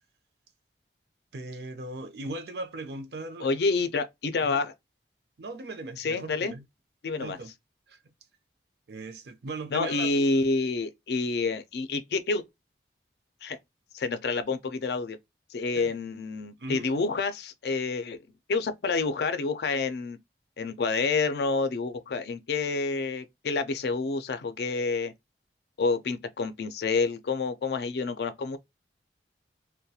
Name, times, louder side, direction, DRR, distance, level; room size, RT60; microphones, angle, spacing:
voice 1, 1.3-3.5 4.4-4.6 5.4-6.6 7.2-7.5 7.9-8.0 8.9-10.2 15.8-16.0 16.6-16.9, right 2 dB, 70° right, 0.5 m, -38 dB
voice 2, 3.4-4.7 6.0-6.5 7.0-7.4 9.7-12.4 13.4-13.6 13.9-15.2 15.5-18.2 18.5-20.2 20.6-25.1 25.8-28.6, left 4 dB, 70° left, 0.4 m, -28 dB
2.3 x 2.1 x 2.7 m
head